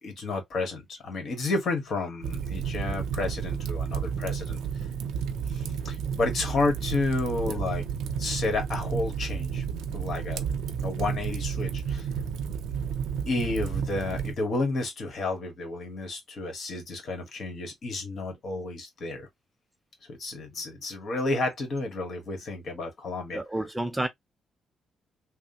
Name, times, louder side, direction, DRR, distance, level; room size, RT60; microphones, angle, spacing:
voice 1, 0.0-4.6 5.5-7.8 8.2-9.6 9.9-10.4 10.8-12.1 13.3-19.3 20.1-23.4, left 3 dB, 55° left, 1.5 m, -31 dB
Fire, 2.2-14.3, right 7 dB, 85° right, 0.5 m, -31 dB
voice 2, 23.3-24.1, right 1 dB, 10° right, 0.5 m, -30 dB
3.4 x 2.1 x 2.7 m
cardioid pair, 90°, 0 cm